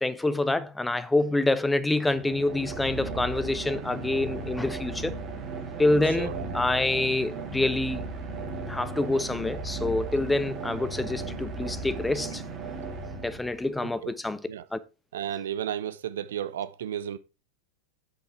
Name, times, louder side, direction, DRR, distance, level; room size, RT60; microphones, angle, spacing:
voice 1, 0.0-5.1 5.7-8.0 8.7-12.4 13.2-14.4 14.7-14.8, left 2 dB, 5° left, 0.7 m, -26 dB
sound 1, 2.0-13.8, right 3 dB, 25° right, 2.0 m, -36 dB
voice 2, 6.0-6.6 13.8-14.1 14.5-14.7 15.1-17.2, right 10 dB, 60° right, 0.6 m, -33 dB
8.0 x 6.3 x 4.5 m
figure-of-eight pair, 90°, 0 cm